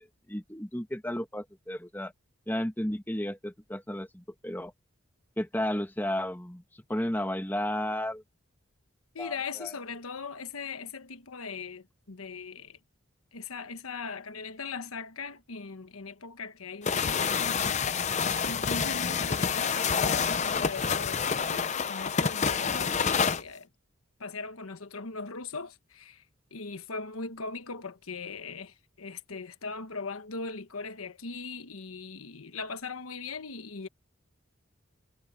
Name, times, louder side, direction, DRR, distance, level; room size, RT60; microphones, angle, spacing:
voice 1, 0.0-2.1 2.5-4.7 5.4-8.2 9.2-9.7, left 1 dB, 10° left, 1.8 m, -33 dB
voice 2, 9.1-12.8 13.3-23.7 24.2-26.2 26.5-33.9, left 4 dB, 85° left, 1.2 m, -40 dB
sound 1, 16.8-23.4, left 6 dB, 35° left, 0.6 m, -28 dB
head